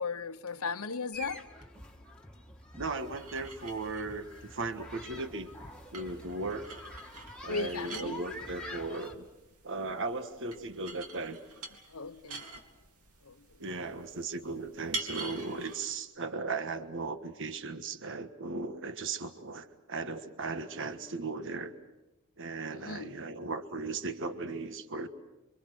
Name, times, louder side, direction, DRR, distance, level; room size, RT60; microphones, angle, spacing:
voice 1, 0.0-1.4 7.5-8.2 11.9-12.4 13.2-13.3 22.7-23.1, left 4 dB, 75° left, 1.0 m, -36 dB
sound 1, 1.1-9.1, left 1 dB, 5° left, 2.0 m, -47 dB
voice 2, 2.8-5.5 5.9-6.7 7.4-9.3 9.6-11.4 13.6-21.7 22.4-25.1, right 3 dB, 60° right, 1.5 m, -37 dB
sound 2, 3.0-15.9, right 3 dB, 85° right, 3.0 m, -46 dB
29.5 x 24.5 x 6.3 m
head